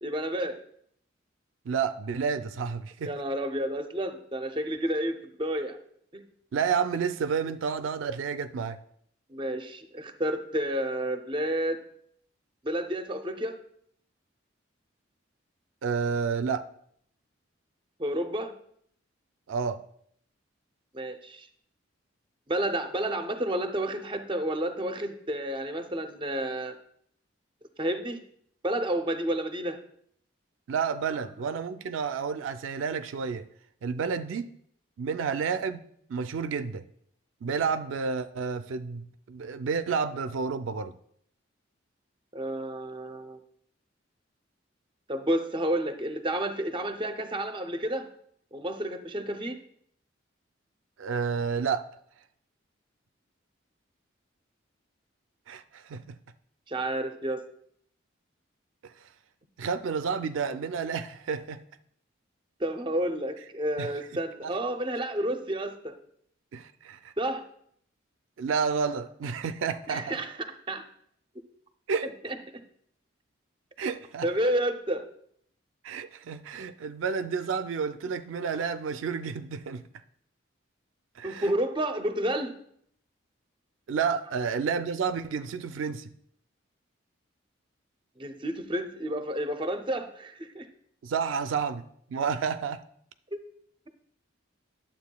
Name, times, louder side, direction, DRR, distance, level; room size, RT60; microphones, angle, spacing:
voice 1, 0.0-0.6 3.0-5.8 6.1-6.2 9.3-11.8 12.6-13.6 18.0-18.5 20.9-21.5 22.5-26.7 27.8-28.2 28.6-29.8 42.3-43.4 45.1-48.1 48.5-49.6 56.7-57.4 62.6-65.9 67.2-67.4 69.9-70.8 72.2-72.6 74.2-75.0 81.2-82.6 88.2-90.7 93.3-93.4, right 1 dB, 25° right, 7 dB, 0.5 m, -30 dB
voice 2, 1.7-3.1 6.5-8.8 15.8-16.6 19.5-19.8 30.7-33.5 33.8-34.5 35.0-36.8 37.4-40.9 51.0-51.9 55.5-56.2 59.6-61.6 63.8-63.9 64.4-64.5 66.5-67.1 68.4-70.2 71.9-72.1 73.8-74.3 75.8-79.8 81.2-81.6 83.9-86.1 91.0-91.8 92.1-92.8, right 6 dB, 80° right, 11 dB, 0.4 m, -30 dB
11.5 x 7.5 x 2.2 m, 0.67 s
head